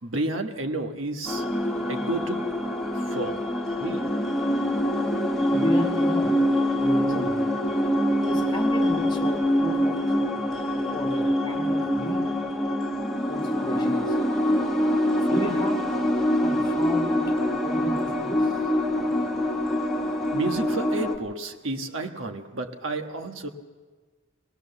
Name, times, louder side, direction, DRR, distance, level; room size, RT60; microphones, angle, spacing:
voice 1, 0.0-1.4 1.9-2.5 2.9-3.5 3.8-4.1 20.3-23.5, right 2 dB, 70° right, 5 dB, 1.4 m, -31 dB
sound 1, 1.3-21.2, equal, ahead, 1.6 m, -25 dB
voice 2, 5.5-6.4 6.8-7.4 8.2-10.0 10.9-12.3 13.3-14.1 15.3-15.9 16.4-17.2 17.6-18.5, equal, 20° left, 3 dB, 1.5 m, -32 dB
21.5 x 19.0 x 6.8 m, 1.4 s
head